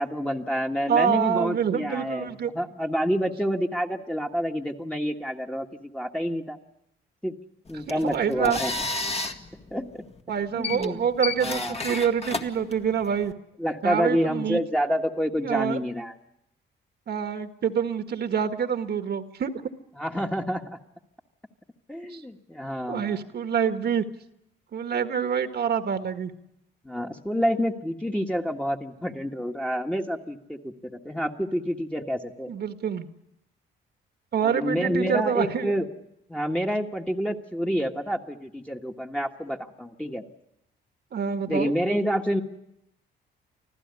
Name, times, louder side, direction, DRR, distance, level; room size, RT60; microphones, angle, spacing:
voice 1, 0.0-6.6 7.2-7.3 7.7-8.7 9.7-10.0 10.5-11.0 11.4-11.9 13.6-16.1 20.0-20.8 21.9-23.2 26.8-32.5 34.4-35.9 36.3-40.2 41.5-42.4, equal, 5° left, 1 dB, 1.6 m, -28 dB
voice 2, 0.9-2.5 7.9-8.6 10.3-13.3 13.8-14.6 15.4-15.8 17.1-19.5 22.1-22.2 22.9-24.0 24.7-26.3 32.5-33.1 34.3-35.7 41.1-41.7, right 7 dB, 55° right, 8 dB, 1.6 m, -26 dB
sound 1, 7.7-13.3, left 3 dB, 30° left, 1.8 m, -33 dB
25.5 x 15.0 x 9.7 m, 0.82 s
cardioid pair, 90°, 20 cm